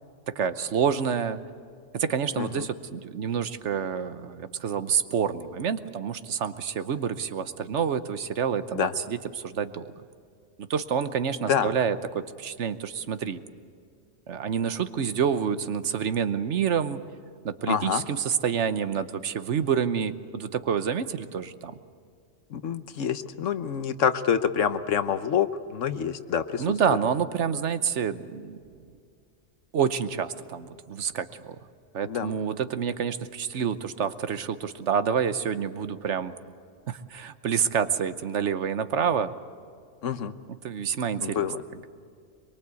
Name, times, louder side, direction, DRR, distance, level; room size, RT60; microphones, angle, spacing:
voice 1, 0.3-1.4 1.9-9.9 10.6-13.4 14.3-17.0 17.4-21.7 26.6-28.6 29.7-31.6 31.9-36.3 36.9-39.3 40.6-41.5, right 7 dB, 70° right, 12 dB, 1.2 m, -28 dB
voice 2, 2.4-2.7 8.7-8.9 11.5-11.7 17.7-18.0 22.5-26.6 32.0-32.4 40.0-40.3 41.2-41.6, left 8 dB, 80° left, 11 dB, 1.3 m, -27 dB
23.5 x 23.0 x 8.3 m, 2.3 s
omnidirectional pair, 1.3 m